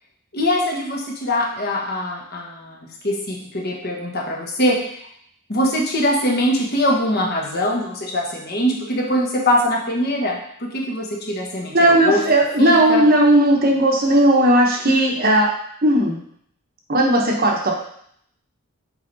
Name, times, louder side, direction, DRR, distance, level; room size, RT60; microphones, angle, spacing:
voice 1, 0.3-5.0 5.5-12.2 12.6-13.1, equal, 45° left, -2 dB, 1.2 m, -22 dB
voice 2, 11.7-15.5 15.8-16.2 16.9-17.7, right 1 dB, 40° right, 0 dB, 1.0 m, -16 dB
7.8 x 3.3 x 4.0 m, 0.68 s
head